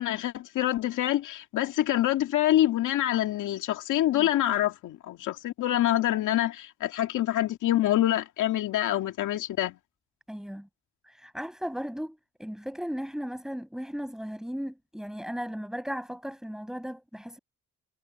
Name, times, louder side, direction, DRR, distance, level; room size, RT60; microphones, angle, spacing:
voice 1, 0.0-9.8, left 13 dB, 80° left, 2.1 m, -26 dB
voice 2, 10.3-10.7 11.0-17.4, equal, ahead, 7.6 m, -36 dB
cardioid pair, 90°, 30 cm